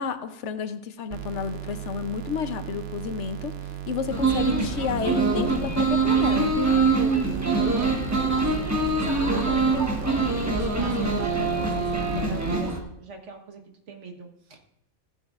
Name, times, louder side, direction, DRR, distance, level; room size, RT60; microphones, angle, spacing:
voice 1, 0.0-3.5 3.9-6.5, left 6 dB, 75° left, 10 dB, 1.0 m, -31 dB
sound 1, 1.1-12.5, right 11 dB, 65° right, 0.8 m, -36 dB
sound 2, 4.1-12.8, right 3 dB, 15° right, 1.3 m, -24 dB
voice 2, 7.7-13.6 13.9-14.6, right 4 dB, 80° right, 3 dB, 1.6 m, -41 dB
14.5 x 9.1 x 2.4 m, 0.74 s
omnidirectional pair, 1.2 m